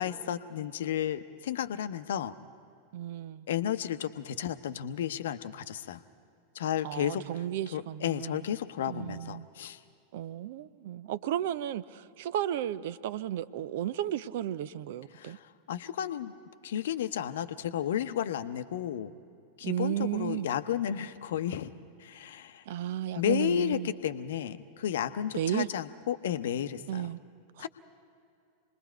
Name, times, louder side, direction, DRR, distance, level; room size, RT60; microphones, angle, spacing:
voice 1, 0.0-2.3 3.5-6.0 6.5-7.3 7.7-9.8 15.1-16.3 16.6-19.1 19.6-21.7 22.0-22.6 23.2-27.1 27.6-27.7, left 10 dB, 60° left, 11 dB, 0.8 m, -32 dB
voice 2, 2.9-3.5 6.8-8.5 8.9-9.5 10.1-15.4 19.6-20.5 22.7-23.9 25.3-25.7 26.9-27.2 27.6-27.7, right 11 dB, 55° right, 17 dB, 0.5 m, -34 dB
28.0 x 21.0 x 4.6 m, 2.5 s
figure-of-eight pair, 90°, 0 cm